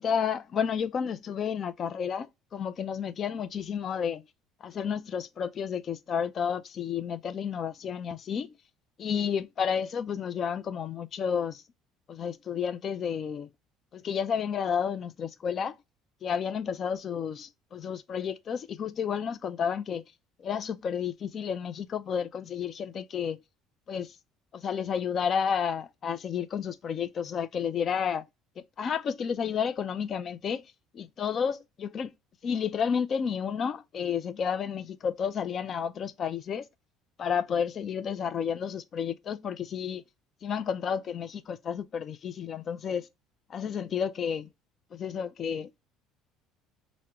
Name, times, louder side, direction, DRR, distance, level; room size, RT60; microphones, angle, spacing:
voice 1, 0.0-4.2 4.6-8.5 9.0-11.6 12.1-13.5 13.9-15.8 16.2-20.0 20.4-23.4 23.9-24.1 24.5-28.2 28.8-30.6 30.9-32.1 32.4-36.7 37.2-40.0 40.4-43.1 43.5-44.5 44.9-45.9, left 7 dB, 35° left, 0.3 m, -31 dB
4.4 x 2.1 x 3.5 m
cardioid pair, 135°, 0 cm